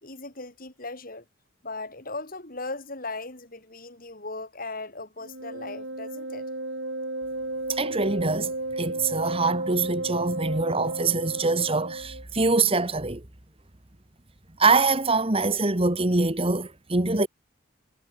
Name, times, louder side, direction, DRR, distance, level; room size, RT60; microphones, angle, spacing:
voice 1, 0.0-1.2 1.6-6.5, left 3 dB, 45° left, 6.0 m, -38 dB
Wind instrument woodwind instrument, 5.2-12.2, right 2 dB, 70° right, 6.3 m, -33 dB
voice 2, 7.7-13.2 14.6-17.3, right 3 dB, 30° right, 1.7 m, -24 dB
head